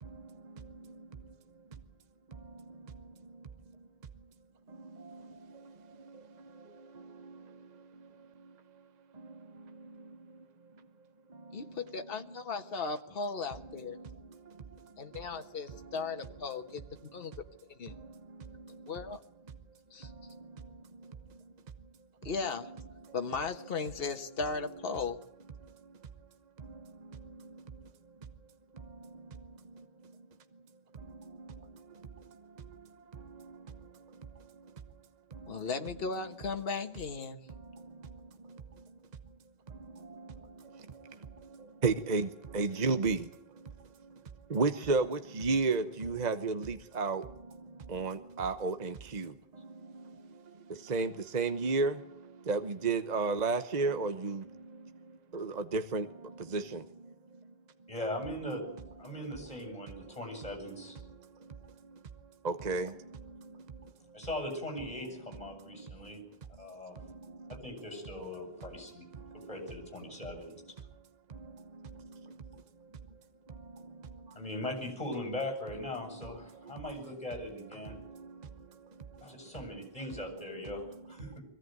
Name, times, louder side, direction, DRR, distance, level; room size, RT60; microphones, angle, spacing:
voice 1, 0.0-1.3 2.3-3.5 4.7-8.5 9.1-10.5 11.3-11.8 13.9-15.4 15.7-16.0 17.9-18.9 20.0-20.6 22.2-22.3 23.0-23.1 25.6-26.0 26.6-27.9 28.7-30.3 30.9-34.7 35.3-35.7 37.5-38.9 39.7-44.2 44.5-57.1 59.0-59.3 60.0-60.1 60.7-62.0 62.4-63.9 65.7-66.1 66.9-67.6 69.1-69.5 71.3-72.6 73.5-74.4 76.0-76.3 76.6-76.7 77.8-79.5 81.2-81.4, right 4 dB, 40° right, 1.1 m, -37 dB
voice 2, 11.5-14.0 15.0-16.8 17.1-17.3 17.7-17.9 18.9-19.2 19.9-20.1 22.2-22.7 23.1-25.2 35.5-37.4, left 4 dB, 60° left, 1.5 m, -36 dB
voice 3, 57.9-58.6 59.0-61.0 64.1-66.2 66.6-67.0 67.5-69.1 69.3-70.5 74.3-78.0 79.2-81.4, left 1 dB, 35° left, 8.1 m, -40 dB
22.5 x 17.0 x 9.4 m
omnidirectional pair, 1.1 m